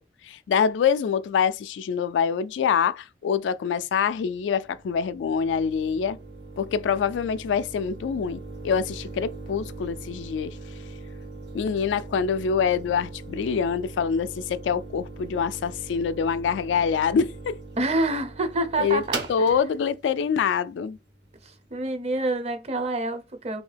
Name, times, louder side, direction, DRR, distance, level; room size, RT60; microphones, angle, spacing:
voice 1, 0.3-6.2 6.6-10.6 11.5-17.6 18.8-19.0 19.3-21.0, left 6 dB, 85° left, 0.3 m, -25 dB
sound 1, 4.0-21.7, right 3 dB, 75° right, 1.1 m, -40 dB
voice 2, 17.8-19.6 21.4-23.6, right 2 dB, 35° right, 0.6 m, -27 dB
3.0 x 2.7 x 3.3 m
head